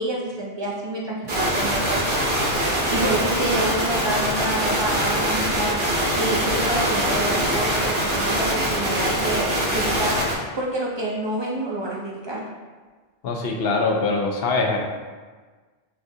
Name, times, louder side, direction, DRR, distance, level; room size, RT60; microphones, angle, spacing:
voice 1, 0.0-2.3 2.9-5.7 6.1-10.2 10.5-12.4, right 1 dB, 35° right, -3 dB, 0.5 m, -28 dB
sound 1, 1.3-10.3, right 1 dB, 55° right, 1.0 m, -23 dB
voice 2, 13.2-14.8, left 3 dB, 70° left, 1 dB, 0.8 m, -23 dB
5.8 x 2.5 x 2.7 m, 1.4 s
omnidirectional pair, 1.1 m